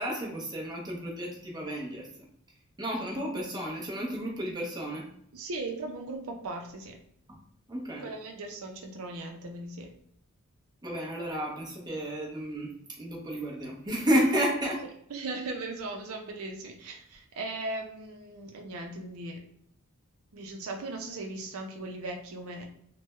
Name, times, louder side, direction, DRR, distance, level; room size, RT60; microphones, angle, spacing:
voice 1, 0.0-2.1 2.8-5.1 7.7-8.1 10.8-12.7 13.0-14.9, equal, 20° right, -2 dB, 0.8 m, -31 dB
voice 2, 5.3-7.0 8.0-9.9 15.1-19.4 20.3-22.7, right 2 dB, 75° right, 3 dB, 0.5 m, -38 dB
3.3 x 2.2 x 3.1 m, 0.69 s
head